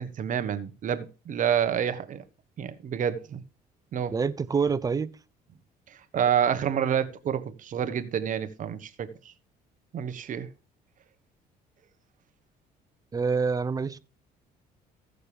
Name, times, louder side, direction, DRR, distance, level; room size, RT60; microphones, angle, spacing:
voice 1, 0.0-2.2 2.6-3.4 3.9-4.2 6.1-9.1 9.9-10.5, right 8 dB, 50° right, 1.2 m, -28 dB
voice 2, 4.1-5.1 13.1-14.0, right 5 dB, 20° right, 0.6 m, -26 dB
15.0 x 6.7 x 3.4 m
cardioid pair, 110°, 17 cm